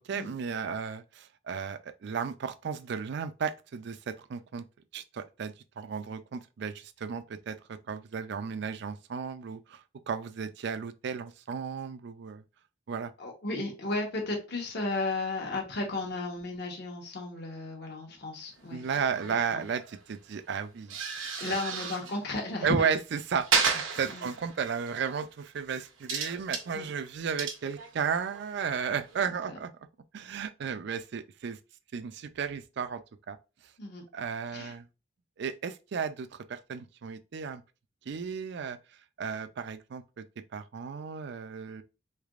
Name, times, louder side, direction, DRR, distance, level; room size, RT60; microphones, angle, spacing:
voice 1, 0.0-4.6 4.9-12.4 12.9-13.1 18.7-21.0 22.6-29.7 30.1-31.6 31.9-33.0 33.3-33.4 34.1-34.9 35.4-37.6 38.1-38.8 39.2-40.2 40.5-41.8, right 6 dB, 60° right, 0.4 m, -34 dB
voice 2, 13.2-18.8 19.5-19.6 21.4-22.9 24.1-24.3 26.7-26.9 29.5-29.6 33.8-34.0 34.5-34.7, left 2 dB, 60° left, 1.1 m, -34 dB
sound 1, 18.6-20.4 20.6-22.2 22.5-22.9 23.3-25.3 25.8-29.2, right 5 dB, 85° right, 0.8 m, -34 dB
3.8 x 3.3 x 2.4 m
head